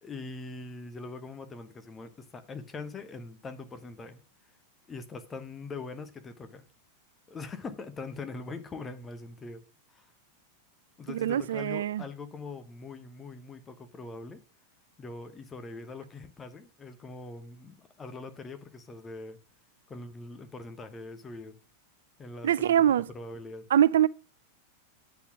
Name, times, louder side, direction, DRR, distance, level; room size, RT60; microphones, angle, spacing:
voice 1, 0.0-4.2 4.9-6.6 7.3-9.6 9.9-10.1 11.0-14.4 15.0-19.4 19.9-21.6 22.2-22.7 23.1-23.6, left 3 dB, 20° left, 0.9 m, -42 dB
voice 2, 11.1-12.0 22.4-23.1 23.7-24.1, right 10 dB, 60° right, 0.3 m, -23 dB
8.1 x 4.1 x 6.0 m
figure-of-eight pair, 90°, 0 cm